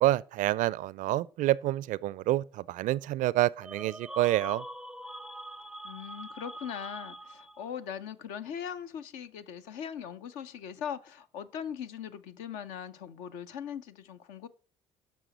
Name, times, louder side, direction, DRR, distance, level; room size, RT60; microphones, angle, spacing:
voice 1, 0.0-4.6, right 15 dB, 60° right, 0.4 m, -28 dB
sound 1, 3.6-7.8, right 1 dB, 5° right, 0.5 m, -43 dB
voice 2, 5.8-14.5, left 8 dB, 75° left, 0.7 m, -40 dB
10.5 x 6.2 x 4.1 m
hypercardioid pair, 50°, 15 cm